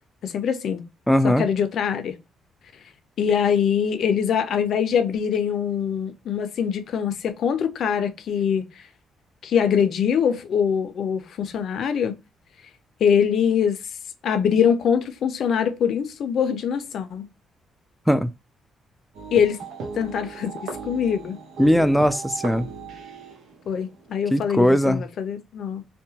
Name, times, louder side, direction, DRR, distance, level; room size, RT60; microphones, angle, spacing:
voice 1, 0.2-0.8 1.2-2.2 3.2-8.8 9.4-12.2 13.0-13.8 14.2-17.2 19.3-19.6 19.9-21.4 23.7-25.9, left 7 dB, 65° left, 0.5 m, -23 dB
voice 2, 1.1-1.5 18.1-18.3 21.6-22.7 24.3-25.0, equal, 5° left, 0.3 m, -19 dB
sound 1, 19.1-25.0, right 4 dB, 80° right, 0.7 m, -38 dB
2.7 x 2.2 x 2.7 m
cardioid pair, 90°, 0 cm